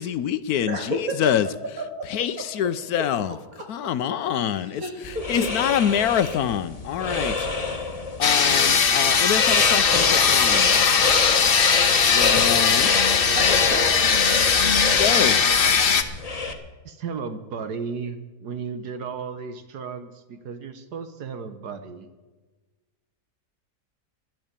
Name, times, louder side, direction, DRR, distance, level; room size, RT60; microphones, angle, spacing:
voice 1, 0.0-1.5 2.1-3.3 3.7-4.8 5.3-7.3 8.2-10.7 12.1-13.1 14.8-15.4, left 9 dB, 70° left, 14 dB, 1.1 m, -26 dB
voice 2, 0.7-1.2 1.6-2.1 2.4-3.9 4.6-5.5 13.3-14.3, right 1 dB, 60° right, 2 dB, 2.8 m, -33 dB
sound 1, 5.0-16.5, left 3 dB, 25° left, 1.2 m, -29 dB
sound 2, 8.2-16.0, left 6 dB, 40° left, 0.9 m, -19 dB
voice 3, 16.8-22.1, right 5 dB, 75° right, 9 dB, 1.6 m, -34 dB
12.0 x 11.0 x 8.8 m, 1.3 s
omnidirectional pair, 1.7 m